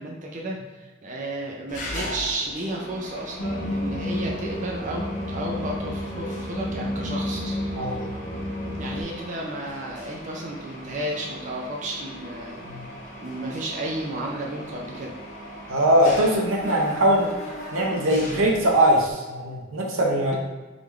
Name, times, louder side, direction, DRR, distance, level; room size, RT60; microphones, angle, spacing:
voice 1, 0.0-8.0 8.7-12.7 13.2-15.1, right 1 dB, 40° right, -2 dB, 0.5 m, -33 dB
Mechanisms, 1.7-19.1, equal, 40° left, 0.8 m, -39 dB
sound 1, 3.4-9.0, left 1 dB, 75° left, 1.1 m, -31 dB
voice 2, 15.7-17.3 17.7-20.4, right 1 dB, 90° right, -1 dB, 0.9 m, -21 dB
3.8 x 3.4 x 3.2 m, 1.2 s
head